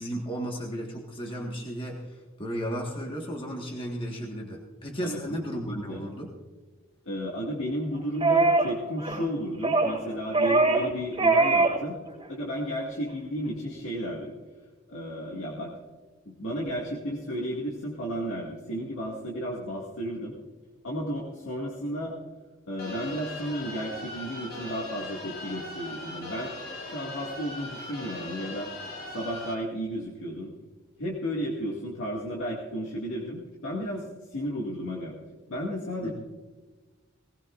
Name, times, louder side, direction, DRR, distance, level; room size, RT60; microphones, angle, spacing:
voice 1, 0.0-6.3 36.0-36.1, equal, 25° left, 0 dB, 1.6 m, -34 dB
voice 2, 5.6-6.0 7.1-12.0 12.3-14.3 14.9-15.7 16.3-20.4 20.8-22.2 22.7-26.5 26.8-28.7 29.1-30.5 31.0-34.0 34.3-35.1 35.5-36.1, equal, 80° left, -4 dB, 2.2 m, -33 dB
sound 1, 8.2-8.7 9.0-9.2 9.6-10.0 10.3-10.9 11.2-11.8 12.1-12.2, right 3 dB, 20° right, 3.6 m, -22 dB
sound 2, 22.8-29.5, left 2 dB, 50° left, 3.1 m, -39 dB
19.5 x 18.5 x 2.5 m, 1.3 s
head